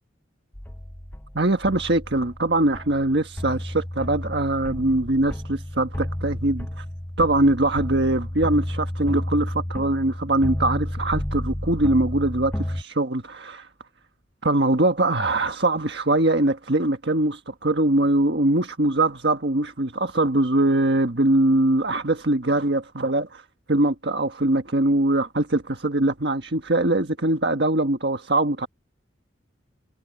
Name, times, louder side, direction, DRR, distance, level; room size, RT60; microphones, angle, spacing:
sound 1, 0.5-12.8, equal, 10° left, 0.8 m, -31 dB
voice 1, 1.3-6.8 7.2-13.7 14.4-23.4 23.7-28.7, right 2 dB, 60° right, 1.6 m, -22 dB
head